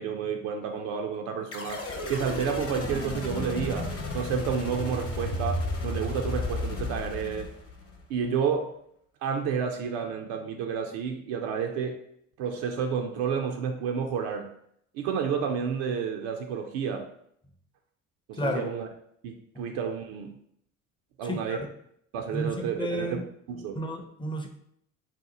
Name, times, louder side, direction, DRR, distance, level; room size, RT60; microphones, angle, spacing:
voice 1, 0.0-1.8 2.1-7.5 8.1-8.7 9.2-12.0 12.4-14.5 14.9-17.1 18.3-18.9 19.2-20.4 21.2-21.7 22.1-23.8, right 6 dB, 75° right, 3 dB, 0.5 m, -30 dB
sound 1, 1.5-8.0, left 2 dB, 35° left, 0.9 m, -33 dB
voice 2, 21.2-21.6 22.3-23.2 23.8-24.5, equal, 15° left, 4 dB, 0.5 m, -32 dB
2.7 x 2.1 x 3.9 m, 0.70 s
hypercardioid pair, 60°, 38 cm